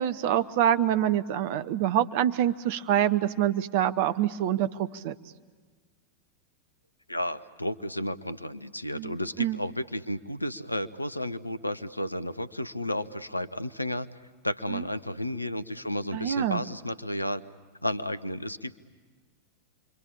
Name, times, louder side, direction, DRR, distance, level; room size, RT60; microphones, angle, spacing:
voice 1, 0.0-5.1 8.9-9.6 14.7-14.8 16.1-16.6, right 11 dB, 50° right, 13 dB, 0.8 m, -26 dB
voice 2, 7.1-14.1 14.4-17.4 17.8-18.8, left 1 dB, 85° left, 15 dB, 0.8 m, -32 dB
29.0 x 24.0 x 8.6 m, 1.5 s
figure-of-eight pair, 90°, 0 cm